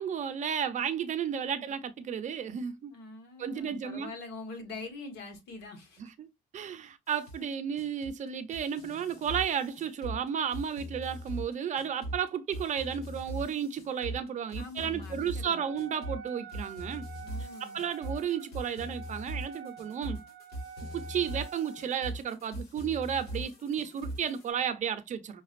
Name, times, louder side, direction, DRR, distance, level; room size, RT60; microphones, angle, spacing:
voice 1, 0.0-2.9 3.4-4.1 6.0-6.3 6.5-17.1 17.6-20.2 20.9-25.4, right 8 dB, 45° right, 0.7 m, -33 dB
voice 2, 2.9-6.0 14.6-15.6 17.2-17.8, left 3 dB, 85° left, 1.4 m, -44 dB
sound 1, 7.1-24.5, right 1 dB, 65° left, 1.9 m, -41 dB
Wind instrument woodwind instrument, 15.5-22.0, right 6 dB, 75° right, 0.8 m, -47 dB
5.8 x 2.4 x 2.5 m
cardioid pair, 110°, 17 cm